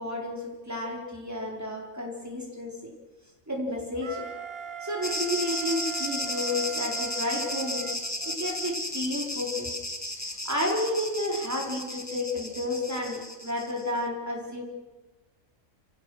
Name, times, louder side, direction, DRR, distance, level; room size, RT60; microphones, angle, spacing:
voice 1, 0.0-2.8 3.5-4.2 4.8-9.8 10.4-14.6, left 1 dB, 10° right, -1 dB, 4.5 m, -31 dB
Wind instrument woodwind instrument, 4.0-8.8, right 7 dB, 50° right, 1.3 m, -40 dB
sound 1, 5.0-13.9, left 1 dB, 10° left, 1.7 m, -34 dB
29.0 x 17.0 x 6.6 m, 1.2 s
omnidirectional pair, 1.4 m